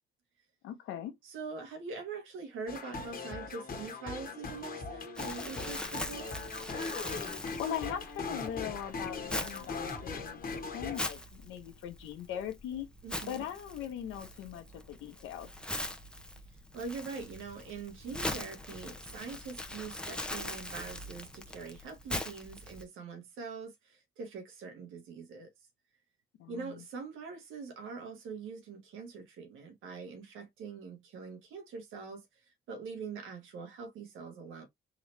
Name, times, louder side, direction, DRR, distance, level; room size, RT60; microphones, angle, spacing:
voice 1, 0.6-1.1 7.4-12.9 13.3-15.5 26.4-26.8, left 10 dB, 90° left, 1.0 m, -40 dB
voice 2, 1.2-6.3 13.0-13.4 16.7-25.5 26.5-34.7, right 4 dB, 85° right, 1.5 m, -43 dB
sound 1, 2.7-11.0, left 4 dB, 45° left, 1.3 m, -40 dB
Crumpling crinkling, 5.2-22.8, left 1 dB, 5° left, 0.7 m, -42 dB
3.8 x 2.9 x 3.3 m
cardioid pair, 90°, 20 cm